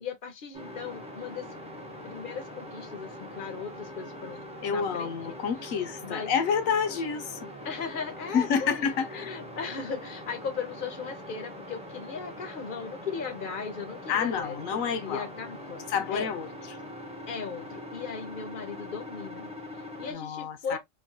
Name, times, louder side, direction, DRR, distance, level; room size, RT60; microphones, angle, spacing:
voice 1, 0.0-1.5 2.0-5.3 6.0-6.3 7.6-14.5 14.9-16.3 17.3-20.8, left 5 dB, 50° left, 0.6 m, -37 dB
sound 1, 0.5-20.1, left 1 dB, 10° right, 0.4 m, -43 dB
voice 2, 4.6-7.5 8.3-9.3 14.1-15.3 15.9-16.5 20.1-20.8, left 7 dB, 80° left, 1.0 m, -29 dB
3.0 x 2.1 x 2.6 m
omnidirectional pair, 1.4 m